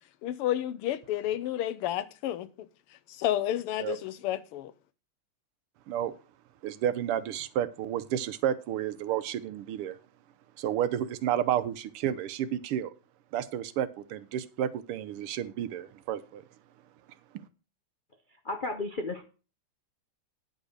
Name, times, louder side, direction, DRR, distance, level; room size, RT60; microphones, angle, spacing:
voice 1, 0.2-2.5 3.1-4.7, left 12 dB, 90° left, 1.7 m, -31 dB
voice 2, 6.6-10.0 10.6-12.9 13.3-16.4, right 10 dB, 90° right, 1.7 m, -31 dB
voice 3, 18.3-19.3, left 2 dB, 75° left, 0.4 m, -34 dB
10.0 x 5.3 x 6.4 m
omnidirectional pair, 2.4 m